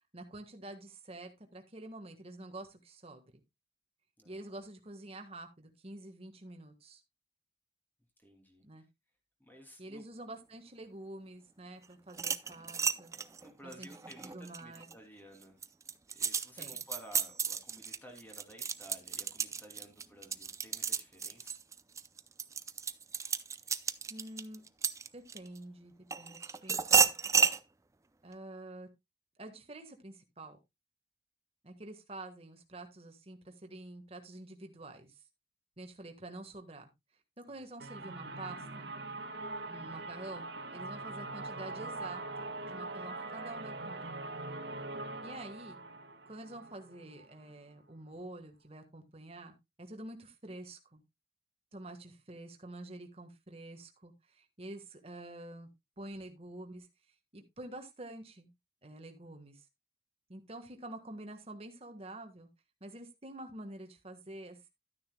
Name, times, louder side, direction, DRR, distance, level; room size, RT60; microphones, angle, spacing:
voice 1, 0.1-3.4 4.2-7.0 8.6-8.8 9.8-13.1 13.6-13.9 14.2-14.8 16.6-16.8 24.1-24.6 25.1-27.1 28.2-28.9 29.4-30.6 31.6-35.1 35.8-36.9 37.4-38.9 39.6-44.1 45.2-45.8 46.3-51.0 51.7-55.7 56.0-56.9 57.3-58.5 58.8-59.6 60.3-62.5 62.8-64.7, right 1 dB, 35° right, 5 dB, 1.5 m, -48 dB
voice 2, 4.2-4.6 8.2-8.6 9.4-10.0 13.4-15.6 16.1-21.6 37.5-37.6 60.7-60.9, equal, 10° left, 3 dB, 2.7 m, -54 dB
sound 1, 12.1-14.9 15.4-25.6 26.1-27.6, right 6 dB, 20° right, 0.4 m, -32 dB
sound 2, 37.8-47.5, right 2 dB, 80° right, 1.5 m, -42 dB
12.5 x 9.6 x 2.2 m, 0.21 s
head